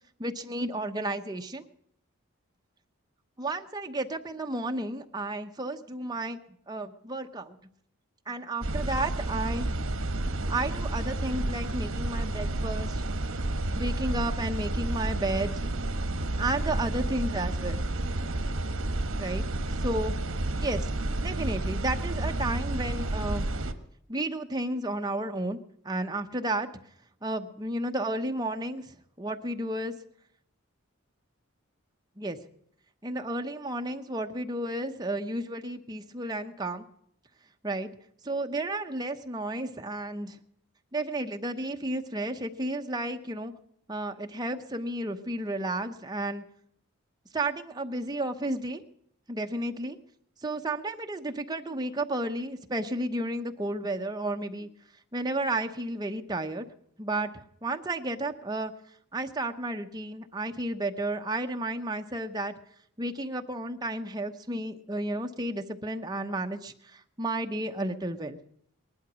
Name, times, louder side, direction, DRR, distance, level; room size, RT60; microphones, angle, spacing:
voice 1, 0.2-1.7 3.4-6.4 6.7-7.6 8.3-9.7 10.5-13.0 13.7-15.6 16.4-17.8 19.2-19.4 19.8-20.2 20.6-20.9 21.2-23.5 24.1-25.6 25.8-26.7 27.2-29.9 32.2-32.4 33.0-36.8 37.6-37.9 38.2-40.4 40.9-43.5 43.9-46.4 47.3-48.8 49.3-50.0 50.4-54.7 55.1-56.7 57.0-58.7 59.1-62.5 63.0-68.4, right 1 dB, 20° right, 5 dB, 0.8 m, -32 dB
sound 1, 8.6-23.7, right 1 dB, 70° right, 1.1 m, -30 dB
19.0 x 11.5 x 6.2 m, 0.70 s
head